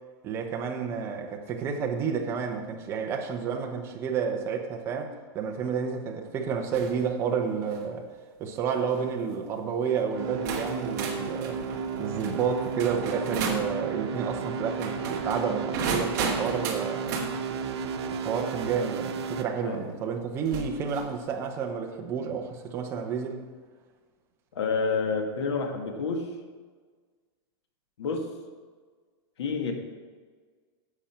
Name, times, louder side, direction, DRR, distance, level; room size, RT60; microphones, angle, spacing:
voice 1, 0.2-8.1 8.4-11.6 12.0-17.2 18.1-23.5, right 6 dB, 20° right, 3 dB, 0.8 m, -30 dB
sound 1, 6.7-7.0 7.5-7.9 8.7-9.0 9.8-9.9 10.5-13.7 14.7-17.3 19.0-19.1 20.4-21.1, right 5 dB, 40° right, 1.5 m, -34 dB
sound 2, 10.1-19.4, right 6 dB, 80° right, 1.0 m, -33 dB
voice 2, 24.5-26.3 28.0-28.3 29.4-29.7, left 4 dB, 85° left, 4 dB, 1.7 m, -29 dB
10.5 x 7.4 x 4.4 m, 1.5 s
supercardioid pair, 175°, 14 cm